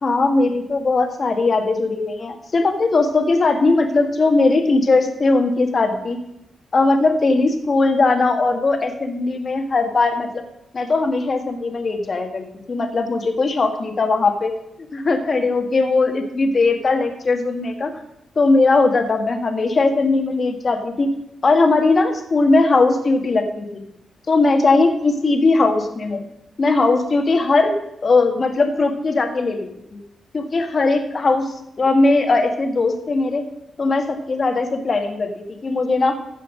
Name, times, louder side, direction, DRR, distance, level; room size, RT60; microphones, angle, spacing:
voice 1, 0.0-6.2 6.7-10.4 10.7-14.5 14.9-17.9 18.3-21.1 21.4-23.8 24.3-26.2 26.6-27.7 28.0-30.0 30.3-33.4 33.8-36.1, left 3 dB, 40° left, 5 dB, 1.6 m, -19 dB
15.0 x 5.8 x 6.3 m, 0.82 s
cardioid pair, 115°, 0 cm